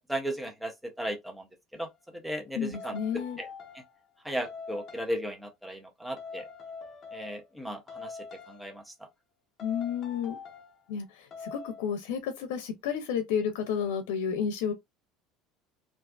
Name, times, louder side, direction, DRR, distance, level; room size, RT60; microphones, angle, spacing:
voice 1, 0.0-1.4 1.7-1.9 2.2-3.0 3.4-3.5 4.2-6.4 7.1-8.1 8.5-8.8, right 1 dB, 5° right, 0.5 m, -35 dB
sound 1, 1.7-1.9 2.7-4.0 4.4-5.2 6.2-7.6 7.9-8.8 9.6-10.8 11.3-11.9, left 4 dB, 40° left, 0.7 m, -44 dB
voice 2, 2.5-3.4 9.6-10.4 10.9-14.7, left 7 dB, 85° left, 0.5 m, -31 dB
2.5 x 2.3 x 2.3 m
supercardioid pair, 120°, 0 cm